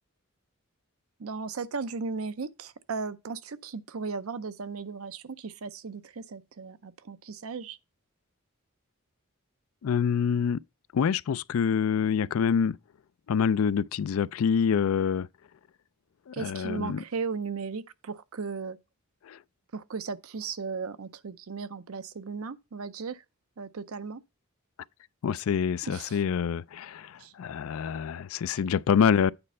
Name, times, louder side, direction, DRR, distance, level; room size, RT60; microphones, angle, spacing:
voice 1, 1.2-7.8 16.3-18.8 19.7-23.2 23.6-24.2 25.8-26.2 27.2-27.3, right 5 dB, 80° right, 0.6 m, -36 dB
voice 2, 9.8-10.6 10.9-12.8 13.3-15.3 16.3-17.0 19.3-19.4 25.2-29.3, left 7 dB, 75° left, 0.4 m, -26 dB
8.9 x 4.2 x 5.4 m
head